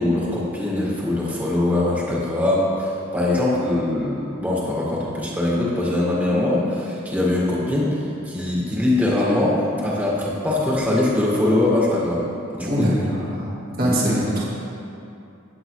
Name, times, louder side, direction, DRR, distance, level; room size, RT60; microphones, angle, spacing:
voice 1, 0.0-8.0 8.3-12.3 12.5-12.9 13.8-14.2, left 1 dB, 10° right, -6 dB, 1.7 m, -22 dB
voice 2, 12.7-14.4, right 1 dB, 45° right, -6 dB, 2.1 m, -23 dB
17.5 x 8.0 x 3.2 m, 2.7 s
head